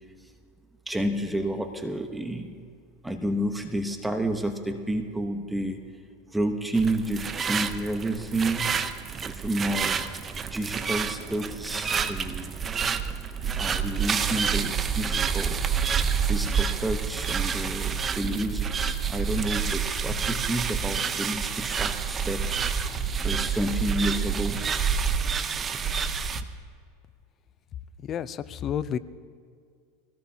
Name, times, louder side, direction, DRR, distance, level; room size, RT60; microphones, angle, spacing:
voice 1, 0.9-2.6 3.0-5.8 6.3-8.7 9.2-10.0 10.4-12.6 13.3-15.8 16.3-22.6 22.9-24.6 25.2-25.3 26.3-26.4, right 1 dB, 5° right, 6 dB, 1.0 m, -30 dB
sound 1, 6.7-26.4, right 6 dB, 25° right, 0.8 m, -28 dB
voice 2, 28.1-29.0, left 9 dB, 35° left, 16 dB, 0.6 m, -30 dB
23.0 x 17.5 x 2.9 m, 2.2 s
supercardioid pair, 110°, 0 cm